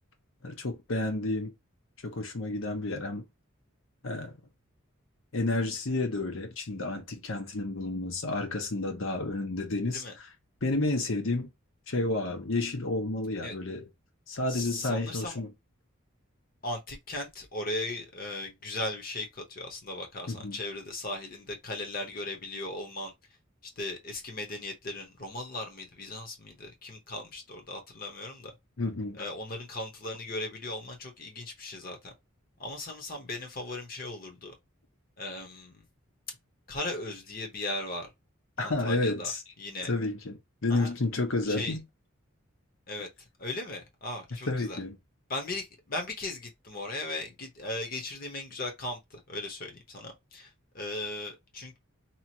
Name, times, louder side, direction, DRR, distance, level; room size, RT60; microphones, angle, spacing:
voice 1, 0.4-1.5 2.0-3.2 4.0-4.4 5.3-10.0 10.6-11.5 11.9-13.8 14.3-15.5 20.3-20.6 28.8-29.2 38.6-39.4 39.9-40.4 40.6-41.8 44.5-45.0, left 2 dB, 70° left, 0.9 m, -30 dB
voice 2, 14.5-15.4 16.6-23.1 23.8-28.5 29.2-32.1 32.6-34.5 35.2-35.8 36.7-38.1 38.6-39.3 39.6-39.9 40.7-40.9 41.4-41.8 42.9-44.8 45.3-51.8, left 2 dB, 45° left, 0.9 m, -37 dB
2.9 x 2.5 x 2.8 m
head